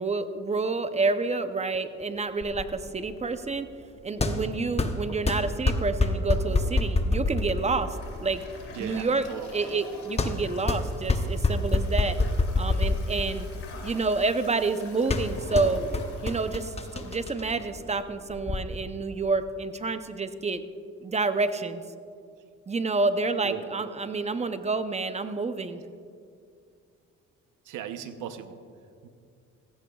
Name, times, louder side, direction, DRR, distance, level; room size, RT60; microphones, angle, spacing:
voice 1, 0.0-3.7 4.0-8.4 8.8-9.3 9.5-12.2 12.6-13.5 13.8-15.8 16.2-20.6 21.0-21.8 22.7-25.8, right 3 dB, 20° right, 10 dB, 0.6 m, -28 dB
sound 1, 2.4-18.6, left 2 dB, 20° left, 0.8 m, -28 dB
Toilet flush, 6.3-18.1, left 2 dB, 50° left, 2.5 m, -47 dB
voice 2, 8.7-9.5 23.4-23.6 27.7-28.6 29.0-29.1, right 9 dB, 85° right, 9 dB, 0.8 m, -37 dB
16.0 x 15.5 x 2.3 m, 2.3 s
cardioid pair, 90°, 30 cm